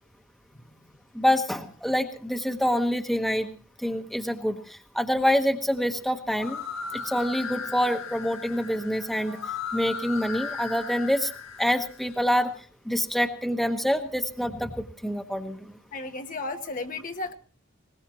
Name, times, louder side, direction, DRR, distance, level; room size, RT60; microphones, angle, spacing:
voice 1, 1.1-3.5 3.8-6.6 6.9-9.4 9.7-11.3 11.6-12.5 12.8-15.7, equal, ahead, 5 dB, 1.2 m, -26 dB
sound 1, 6.3-12.1, left 5 dB, 75° left, 1.8 m, -37 dB
voice 2, 15.9-17.3, left 3 dB, 40° left, 6 dB, 1.3 m, -34 dB
21.0 x 20.0 x 3.0 m, 0.40 s
head